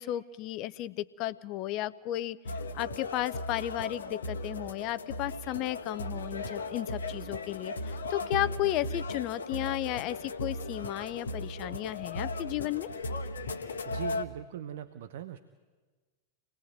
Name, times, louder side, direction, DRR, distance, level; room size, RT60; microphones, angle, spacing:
voice 1, 0.0-2.4 2.7-12.9, left 14 dB, 40° left, 17 dB, 0.8 m, -34 dB
sound 1, 2.4-14.2, left 2 dB, 70° left, 1.1 m, -37 dB
voice 2, 13.8-15.4, right 10 dB, 55° right, 11 dB, 0.9 m, -40 dB
26.5 x 19.5 x 9.3 m, 1.4 s
figure-of-eight pair, 90°, 0 cm